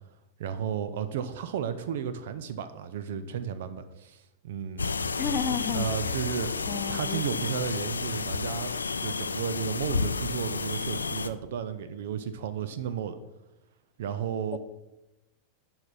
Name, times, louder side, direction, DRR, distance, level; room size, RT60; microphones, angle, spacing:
voice 1, 0.4-5.2 5.7-6.6 6.9-13.2 14.0-14.6, right 8 dB, 55° right, 0.5 m, -33 dB
sound 1, 4.8-11.3, left 4 dB, 75° left, 0.4 m, -31 dB
voice 2, 5.2-6.2 6.7-7.5 14.5-14.6, left 7 dB, 30° left, 0.6 m, -33 dB
sound 2, 5.9-9.6, right 6 dB, 35° right, 1.1 m, -50 dB
10.5 x 5.9 x 4.1 m
figure-of-eight pair, 90°, 0 cm